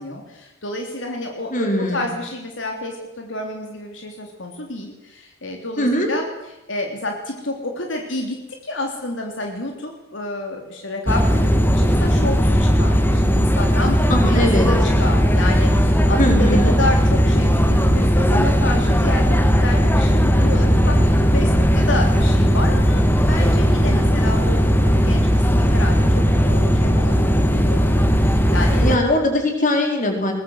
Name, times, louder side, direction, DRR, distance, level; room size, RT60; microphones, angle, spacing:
voice 1, 0.0-6.3 6.7-8.4 8.6-28.8, left 2 dB, 75° left, 2 dB, 3.3 m, -29 dB
voice 2, 1.5-2.1 5.8-6.1 14.1-14.7 16.2-16.7 28.8-30.3, left 1 dB, 45° left, 3 dB, 5.1 m, -20 dB
sound 1, 11.1-29.0, equal, 10° left, 1.7 m, -17 dB
22.0 x 19.5 x 8.1 m, 0.93 s
head